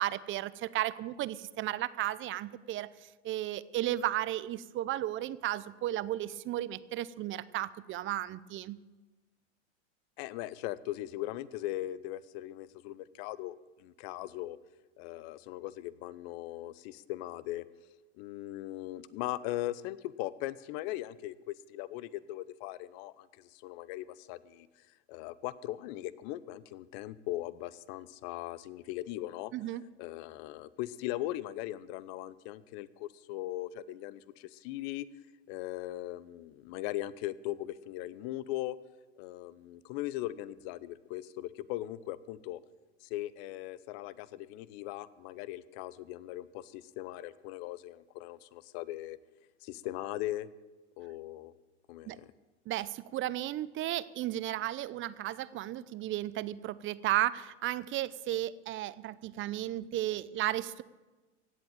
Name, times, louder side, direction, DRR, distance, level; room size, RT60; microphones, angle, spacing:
voice 1, 0.0-2.9 3.2-8.8 29.5-29.8 52.0-52.2 52.7-60.8, right 14 dB, 35° right, 18 dB, 0.6 m, -34 dB
voice 2, 10.2-14.6 15.0-17.6 18.2-24.7 25.1-29.5 30.0-35.1 35.5-38.8 39.2-42.6 43.0-49.2 49.6-50.5 51.0-51.5 51.9-52.3, left 15 dB, 55° left, 18 dB, 0.9 m, -39 dB
16.5 x 8.0 x 8.9 m, 1.2 s
hypercardioid pair, 105°, 37 cm